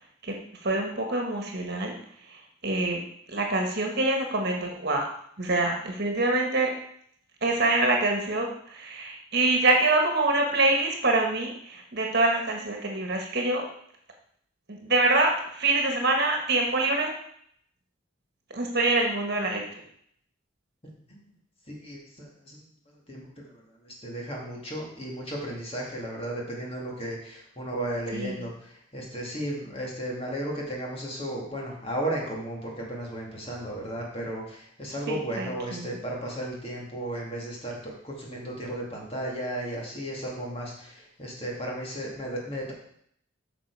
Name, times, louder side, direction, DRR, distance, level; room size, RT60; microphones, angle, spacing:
voice 1, 0.2-1.9 2.2-3.0 3.3-5.1 5.4-6.7 7.4-13.6 14.7-17.1 18.5-19.6 28.1-28.4 35.1-36.0, right 2 dB, 50° right, 2 dB, 1.6 m, -25 dB
voice 2, 21.7-22.6 23.1-23.5 23.8-28.5 28.9-42.7, right 1 dB, 30° left, -2 dB, 2.3 m, -34 dB
9.4 x 6.3 x 4.8 m, 0.67 s
head